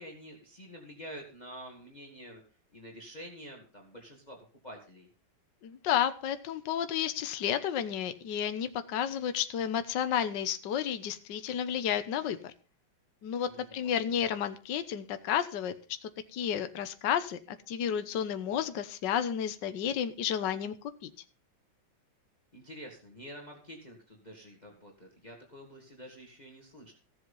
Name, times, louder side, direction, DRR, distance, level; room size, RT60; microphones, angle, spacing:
voice 1, 0.0-2.4 2.7-4.4 4.6-5.1 13.5-14.2 22.5-26.9, equal, 20° left, 1 dB, 2.2 m, -48 dB
voice 2, 5.6-12.5 13.2-15.7 16.0-20.8 21.0-21.1, left 9 dB, 65° left, 9 dB, 1.6 m, -31 dB
15.5 x 7.7 x 5.5 m, 0.36 s
omnidirectional pair, 2.1 m